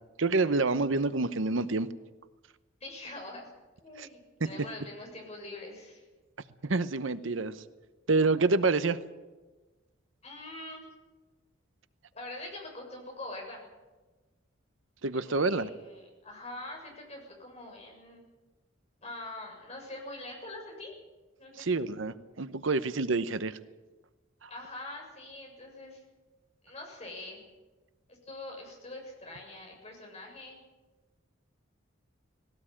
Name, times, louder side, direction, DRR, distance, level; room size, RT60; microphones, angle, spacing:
voice 1, 0.2-1.9 4.0-4.1 6.6-7.6 8.1-9.0 15.0-15.7 21.6-23.6, right 3 dB, 70° right, 13 dB, 0.9 m, -27 dB
voice 2, 2.8-3.5 3.8-6.1 10.2-10.8 12.1-13.6 15.1-18.2 19.0-20.9 21.4-21.7 24.5-26.0 26.6-27.4 28.1-30.6, left 2 dB, 35° left, 0 dB, 6.9 m, -44 dB
19.0 x 17.5 x 8.8 m, 1.2 s
head